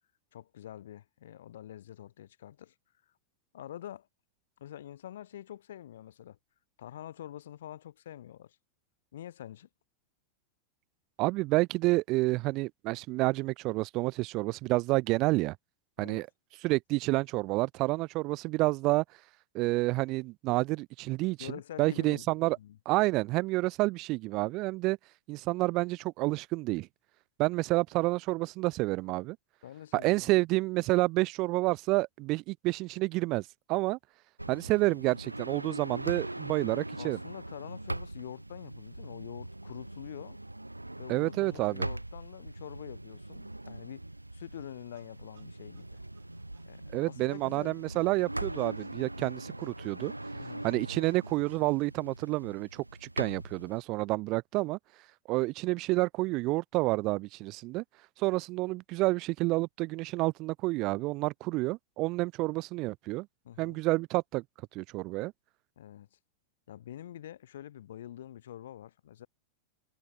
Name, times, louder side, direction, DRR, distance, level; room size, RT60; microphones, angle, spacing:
voice 1, 0.3-2.7 3.5-4.1 4.6-6.4 6.8-8.6 9.1-9.7 16.0-16.2 21.4-22.8 29.6-30.4 37.0-40.4 41.0-44.0 44.3-46.0 46.6-47.8 48.4-48.6 50.3-50.7 63.4-63.8 65.8-66.2 66.7-69.3, left 11 dB, 60° left, 5.8 m, -46 dB
voice 2, 11.2-15.6 16.0-16.3 16.6-19.0 19.5-21.5 21.8-22.6 22.9-25.0 25.3-26.9 27.4-29.4 29.9-34.0 34.5-37.2 41.1-41.9 46.9-50.1 50.6-54.8 55.3-57.8 58.2-63.3 63.6-64.4 64.7-65.3, right 21 dB, 40° right, 0.3 m, -29 dB
sound 1, 34.4-53.8, right 1 dB, 85° right, 1.7 m, -41 dB
sound 2, 44.5-51.9, right 12 dB, 60° right, 6.0 m, -62 dB
figure-of-eight pair, 90°, 0 cm